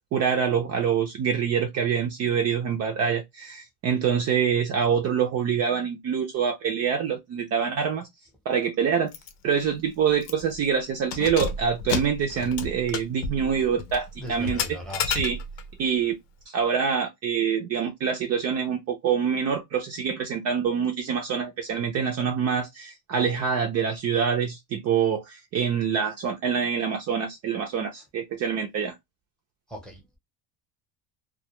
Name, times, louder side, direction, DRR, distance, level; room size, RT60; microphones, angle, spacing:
voice 1, 0.1-8.1 8.5-9.1 9.4-14.8 15.1-15.4 15.8-16.2 16.5-28.9, right 7 dB, 40° right, 0.4 m, -25 dB
Keys jangling, 9.1-9.3 9.6-9.7 10.2-10.6 11.0-15.7, left 5 dB, 80° left, 0.7 m, -32 dB
voice 2, 14.2-15.0 29.7-30.2, equal, ahead, 0.7 m, -38 dB
2.2 x 2.2 x 2.8 m
cardioid pair, 155°, 42 cm